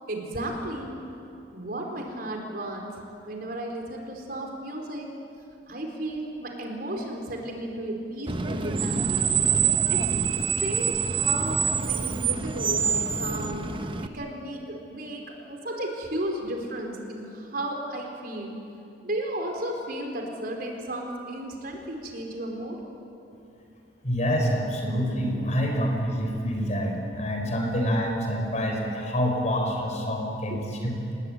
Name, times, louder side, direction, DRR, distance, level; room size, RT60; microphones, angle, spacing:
voice 1, 0.1-0.9 1.5-2.9 3.2-5.1 5.7-9.1 9.9-10.1 10.6-13.6 14.0-15.2 15.5-18.6 19.0-22.8 30.5-30.6, right 1 dB, 55° right, 2 dB, 4.5 m, -34 dB
Screech, 8.3-14.1, right 6 dB, 30° right, 1.0 m, -26 dB
voice 2, 24.0-31.0, equal, 40° left, 2 dB, 5.4 m, -27 dB
28.5 x 19.5 x 9.4 m, 2.7 s
head